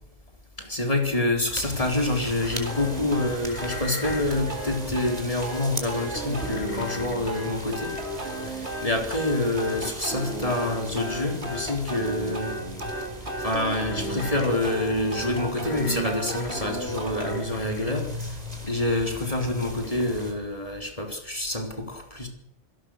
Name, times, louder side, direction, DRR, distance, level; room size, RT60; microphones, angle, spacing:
voice 1, 0.6-12.6 13.4-22.3, left 2 dB, 30° left, 2 dB, 4.2 m, -27 dB
sound 1, 1.5-2.8 3.4-4.5 5.4-5.5 6.3-8.6 9.7-9.9 10.8-10.9 11.7-12.0 13.9-14.7 15.1-15.2 15.6-16.7 17.3-17.9 19.3-19.4 19.8-19.9 20.2-20.3, left 3 dB, 70° left, 6.5 m, -44 dB
sound 2, 1.5-20.3, equal, 35° right, 4.4 m, -39 dB
sound 3, 2.6-17.4, right 1 dB, 75° right, 3.6 m, -34 dB
25.5 x 18.5 x 6.6 m, 0.71 s
omnidirectional pair, 1.1 m